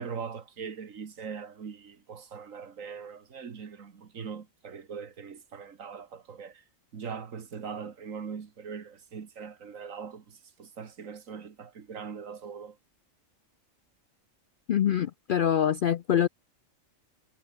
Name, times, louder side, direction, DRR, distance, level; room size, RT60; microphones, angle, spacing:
voice 1, 0.0-6.6 6.9-12.8, right 6 dB, 75° right, 2.0 m, -41 dB
voice 2, 14.7-16.3, left 9 dB, 65° left, 0.5 m, -25 dB
omnidirectional pair, 1.4 m